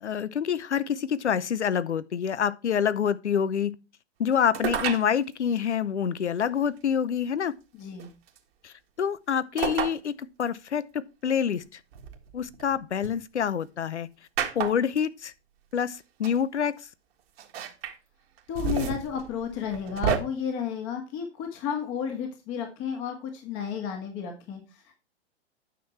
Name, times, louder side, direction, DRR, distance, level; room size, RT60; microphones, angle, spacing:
voice 1, 0.0-3.7 4.2-7.5 8.6-11.8 12.3-14.1 14.5-15.3 15.7-16.7, left 8 dB, 85° left, 0.7 m, -27 dB
sound 1, 4.5-5.1 6.4-6.5 8.0-8.4 9.6-10.0 10.4-10.5 11.9-13.1 14.4-15.0 15.9-16.0 16.2-16.4 17.4-17.9 18.4-20.2, right 8 dB, 60° right, 1.7 m, -30 dB
voice 2, 7.7-8.1 18.5-25.0, left 7 dB, 35° left, 1.9 m, -32 dB
9.3 x 6.0 x 4.4 m
figure-of-eight pair, 110°, 34 cm